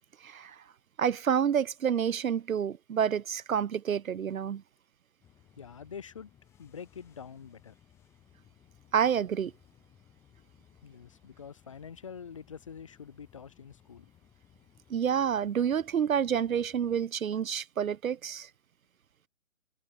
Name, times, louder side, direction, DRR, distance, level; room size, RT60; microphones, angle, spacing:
voice 1, 0.2-0.5 1.0-4.6 8.9-9.5 14.9-18.5, right 8 dB, 70° right, 0.7 m, -28 dB
sound 1, 5.2-17.1, left 10 dB, 5° left, 3.8 m, -62 dB
voice 2, 5.6-6.3 6.6-7.7 10.8-14.1, left 7 dB, 20° left, 1.4 m, -46 dB
hypercardioid pair, 175°, 43 cm